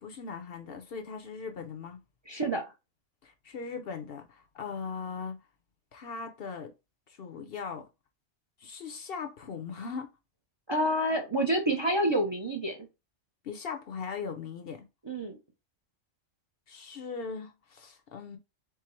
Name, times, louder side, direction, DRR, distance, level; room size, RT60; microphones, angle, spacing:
voice 1, 0.0-2.0 3.2-5.4 5.9-6.7 7.1-7.9 8.6-10.1 13.4-14.8 16.7-18.4, left 5 dB, 55° left, 0.8 m, -39 dB
voice 2, 2.3-2.6 10.7-12.8 15.0-15.4, right 1 dB, 30° right, 0.5 m, -28 dB
4.7 x 2.0 x 4.4 m
omnidirectional pair, 1.3 m